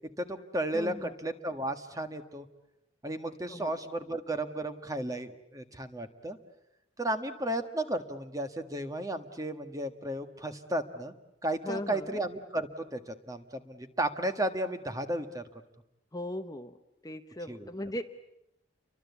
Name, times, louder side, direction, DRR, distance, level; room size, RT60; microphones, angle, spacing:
voice 1, 0.2-2.5 3.0-6.4 7.0-11.1 11.4-15.4 17.5-17.7, right 1 dB, 15° right, 8 dB, 1.6 m, -34 dB
voice 2, 0.7-1.1 3.5-3.7 11.6-12.2 16.1-16.8 17.0-18.0, left 1 dB, 20° left, 7 dB, 1.0 m, -38 dB
29.5 x 24.0 x 8.3 m, 0.84 s
head